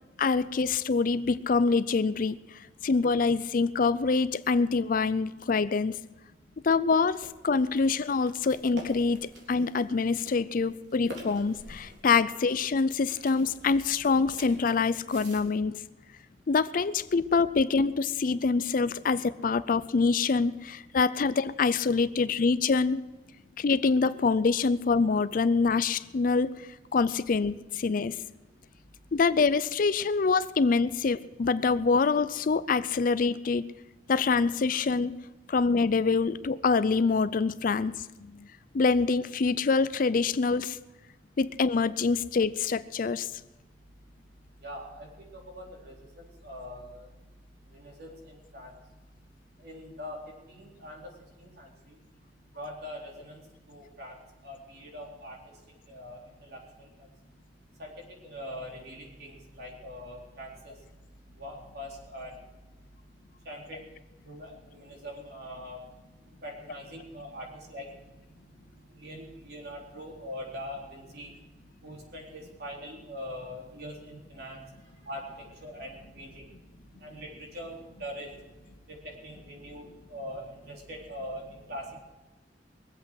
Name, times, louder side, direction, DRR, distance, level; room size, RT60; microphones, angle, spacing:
voice 1, 0.2-6.0 6.6-15.8 16.5-23.0 23.6-26.5 26.9-28.2 29.1-33.7 34.1-35.2 35.5-38.5 38.7-40.8 41.4-43.3, left 4 dB, 50° left, 16 dB, 0.4 m, -25 dB
sound 1, 7.1-15.4, equal, 85° right, 3.8 m, -47 dB
voice 2, 44.6-45.1 45.5-47.0 47.8-48.1 48.5-48.7 49.6-50.2 50.5-51.1 51.4-51.7 52.6-53.4 53.7-54.1 54.4-55.3 55.9-56.2 56.5-56.6 57.8-57.9 58.2-60.7 61.4-62.3 63.5-63.8 64.3-65.8 66.4-67.8 69.0-71.3 71.8-74.6 75.1-75.2 75.6-76.4 77.0-77.3 77.5-78.3 79.2-79.8 80.1-82.0, equal, 60° right, -1 dB, 3.9 m, -42 dB
22.0 x 8.1 x 6.4 m, 1.1 s
head